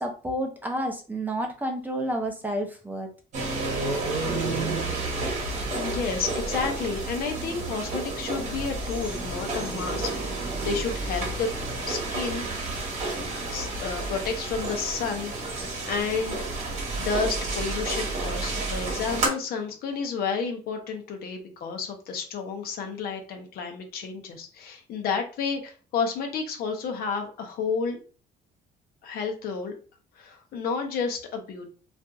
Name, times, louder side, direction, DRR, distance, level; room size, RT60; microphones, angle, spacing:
voice 1, 0.0-3.1, right 1 dB, 10° right, 2 dB, 0.5 m, -30 dB
sound 1, 3.3-19.3, right 3 dB, 45° right, 1.0 m, -30 dB
voice 2, 5.7-11.5 11.9-12.5 13.5-16.4 17.0-28.0 29.0-29.7 30.1-31.7, left 5 dB, 65° left, 3 dB, 0.7 m, -31 dB
2.6 x 2.4 x 2.3 m, 0.37 s
cardioid pair, 110°, 17 cm